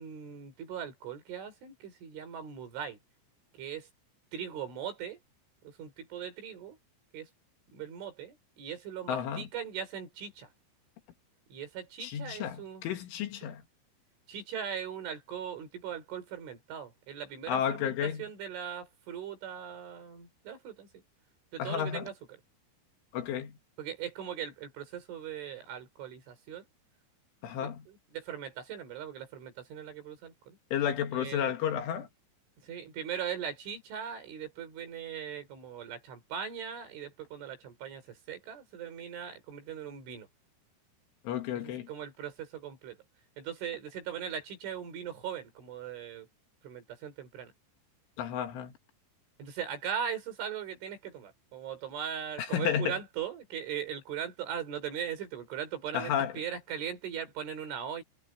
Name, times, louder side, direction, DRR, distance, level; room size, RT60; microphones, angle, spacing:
voice 1, 0.0-3.0 3.5-3.9 4.3-5.2 5.6-6.8 7.1-7.3 7.7-10.5 11.5-12.8 14.3-20.9 21.5-22.1 23.8-26.6 27.6-30.6 31.1-31.5 32.6-40.3 41.6-43.0 43.4-46.3 46.6-47.5 49.4-58.0, right 8 dB, 85° right, 7.7 m, -39 dB
voice 2, 9.1-9.5 12.0-13.6 17.5-18.3 21.6-22.1 23.1-23.6 27.4-27.9 30.7-32.1 41.2-41.9 48.2-48.7 52.4-53.0 55.9-56.3, left 9 dB, 90° left, 4.8 m, -32 dB
omnidirectional pair, 5.4 m